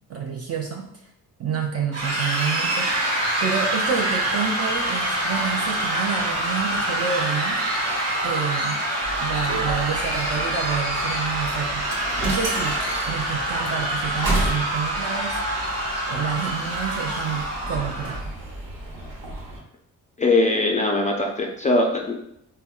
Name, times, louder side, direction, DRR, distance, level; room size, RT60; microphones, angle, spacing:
voice 1, 0.1-0.9 1.4-7.6 8.2-8.8 9.2-11.9 12.2-12.8 13.1-15.4 16.1-18.3, right 7 dB, 35° right, 1 dB, 0.5 m, -29 dB
sound 1, 1.9-18.2, right 1 dB, 80° right, 1.1 m, -26 dB
sound 2, 9.0-19.6, right 2 dB, 55° right, 1.1 m, -32 dB
voice 2, 20.2-22.1, left 2 dB, 20° left, 0 dB, 0.3 m, -21 dB
3.4 x 2.2 x 2.3 m, 0.77 s
hypercardioid pair, 45°, 41 cm